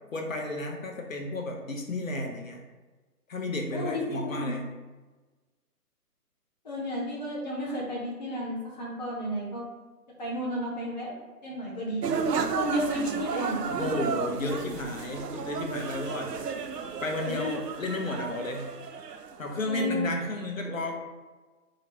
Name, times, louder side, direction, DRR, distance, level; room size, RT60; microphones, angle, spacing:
voice 1, 0.1-2.6 3.3-4.6 13.7-16.3 17.0-18.7 19.4-21.0, left 2 dB, 55° left, 2 dB, 0.8 m, -32 dB
voice 2, 3.7-4.5 6.6-9.7 10.2-11.1 11.4-12.1 12.5-13.7 17.3-17.5 19.7-20.1, equal, 30° left, -5 dB, 0.6 m, -32 dB
sound 1, 12.0-19.5, right 5 dB, 80° right, 0.6 m, -33 dB
3.7 x 2.8 x 3.3 m, 1.3 s
figure-of-eight pair, 140°, 47 cm